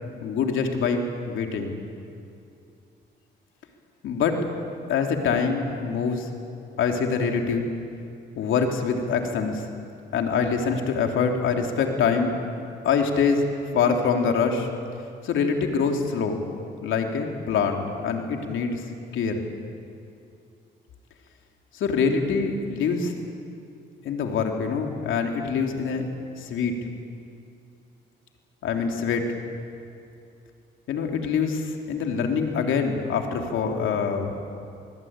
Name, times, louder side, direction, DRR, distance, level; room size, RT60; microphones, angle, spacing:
voice 1, 0.2-1.8 4.0-4.4 4.9-6.3 6.8-7.7 8.3-9.7 10.1-12.3 12.8-13.4 13.7-14.7 15.2-16.4 16.8-18.8 19.1-19.4 21.7-23.1 24.0-26.1 26.4-26.7 28.6-29.3 30.9-34.4, left 5 dB, 80° left, 3 dB, 3.1 m, -25 dB
25.5 x 20.5 x 8.9 m, 2.5 s
cardioid pair, 90°, 20 cm